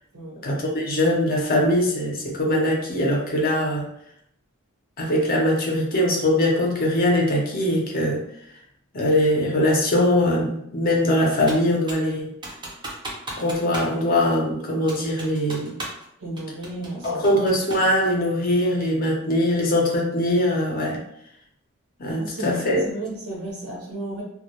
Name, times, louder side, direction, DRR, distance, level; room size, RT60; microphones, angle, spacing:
voice 1, 0.4-3.9 5.0-8.2 8.9-12.3 13.4-15.8 17.0-21.0 22.0-22.8, left 1 dB, 40° left, -2 dB, 0.6 m, -22 dB
Computer keyboard, 11.5-12.1 12.4-13.9 14.2-14.3 14.9-16.1 16.4-17.9, right 1 dB, 20° right, 0.5 m, -35 dB
voice 2, 16.2-17.3 22.1-24.2, right 2 dB, 85° right, -4 dB, 1.1 m, -33 dB
2.2 x 2.0 x 2.8 m, 0.73 s
head